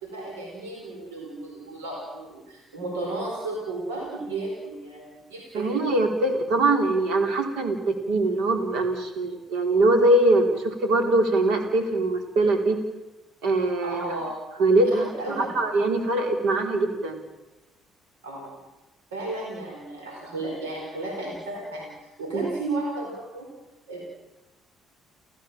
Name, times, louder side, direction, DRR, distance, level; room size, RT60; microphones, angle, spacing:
voice 1, 0.0-5.9 13.8-14.3 15.1-15.5 18.2-18.6 19.1-21.9 22.2-23.5 23.9-24.0, right 2 dB, 85° right, -1 dB, 4.5 m, -33 dB
voice 2, 5.5-12.8 13.4-14.1 14.6-17.2 22.3-22.5, right 2 dB, 70° right, 5 dB, 4.0 m, -22 dB
30.0 x 14.5 x 7.5 m, 1.0 s
hypercardioid pair, 50°, 0 cm